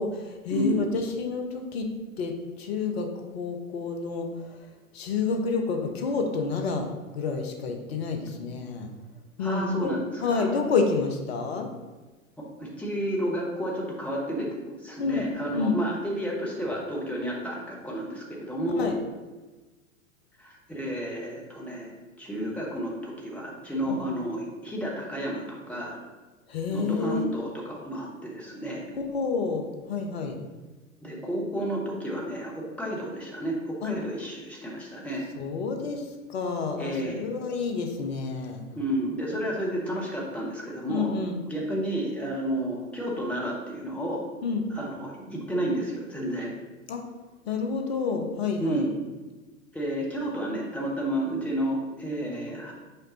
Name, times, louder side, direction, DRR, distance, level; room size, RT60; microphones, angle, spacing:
voice 1, 0.0-1.9 2.2-4.6 4.9-6.9 7.1-8.9 9.4-9.9 10.2-11.7 15.0-15.3 15.5-15.8 18.8-19.0 23.9-24.0 26.5-27.4 28.9-30.4 33.8-33.9 35.4-38.6 39.3-39.6 40.9-41.4 44.4-44.7 46.9-47.0 47.5-48.9, left 4 dB, 50° left, 4 dB, 0.9 m, -29 dB
voice 2, 0.5-0.9 9.4-10.5 12.4-18.9 20.4-21.9 22.2-26.0 26.7-28.9 31.0-35.2 36.8-37.2 38.8-41.1 41.5-44.2 44.7-46.5 48.6-49.0 49.7-52.7, right 1 dB, 5° left, -3 dB, 0.9 m, -31 dB
6.7 x 5.1 x 2.9 m, 1.2 s
figure-of-eight pair, 100°, 41 cm